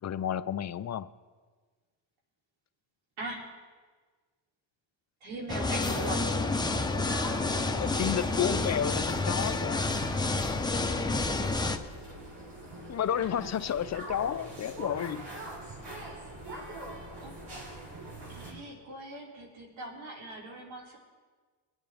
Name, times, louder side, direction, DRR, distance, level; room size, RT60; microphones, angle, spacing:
voice 1, 0.0-1.1 7.7-9.9 12.9-15.3, left 9 dB, 35° left, 12 dB, 0.5 m, -31 dB
voice 2, 3.2-3.5 5.2-6.3 11.0-11.1 13.2-13.5 17.2-17.4 18.3-21.0, right 2 dB, 90° right, -2 dB, 3.2 m, -41 dB
sound 1, 5.5-11.8, left 3 dB, 10° left, 0.8 m, -29 dB
sound 2, 5.8-18.5, right 1 dB, 55° right, 3.9 m, -42 dB
23.5 x 9.0 x 3.5 m, 1.4 s
cardioid pair, 95°, 48 cm